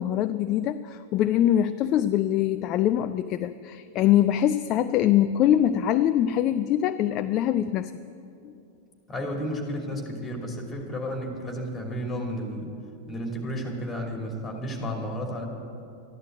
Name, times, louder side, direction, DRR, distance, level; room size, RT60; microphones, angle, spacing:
voice 1, 0.0-7.9 8.4-8.5, left 11 dB, 35° left, 11 dB, 0.4 m, -23 dB
voice 2, 9.1-12.7 13.1-15.4, equal, 20° left, 2 dB, 2.8 m, -32 dB
13.5 x 11.0 x 7.9 m, 2.6 s
figure-of-eight pair, 90°, 0 cm